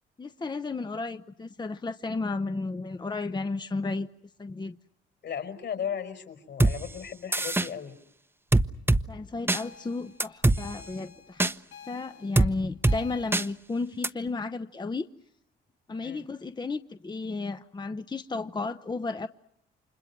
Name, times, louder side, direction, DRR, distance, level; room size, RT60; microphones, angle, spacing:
voice 1, 0.2-4.1 4.4-4.8 9.1-11.6 11.9-15.1 15.9-19.3, left 3 dB, 20° left, 0.9 m, -33 dB
voice 2, 5.2-8.0 16.0-16.2, left 8 dB, 60° left, 5.5 m, -36 dB
sound 1, 6.6-6.7 7.3-7.7 8.5-9.0 9.5-9.6 10.2-10.6 11.4-11.5 12.3-12.5 12.8-13.0 13.3-13.4 14.0-14.1, right 2 dB, 10° right, 1.0 m, -21 dB
sound 2, 9.5-13.3, left 7 dB, 80° left, 7.5 m, -49 dB
30.0 x 26.5 x 6.0 m
cardioid pair, 90°, 20 cm